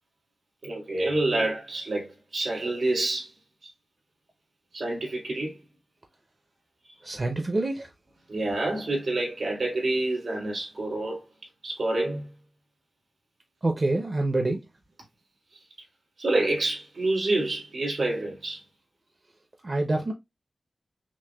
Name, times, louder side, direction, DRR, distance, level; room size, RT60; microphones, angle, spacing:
voice 1, 0.6-3.3 4.7-5.5 8.3-11.2 11.6-12.3 16.2-18.6, right 2 dB, 70° right, 2.8 m, -27 dB
voice 2, 7.0-7.9 13.6-14.6 19.6-20.1, right 2 dB, 35° right, 0.6 m, -26 dB
6.0 x 2.1 x 2.3 m
wide cardioid pair, 110°, 0 cm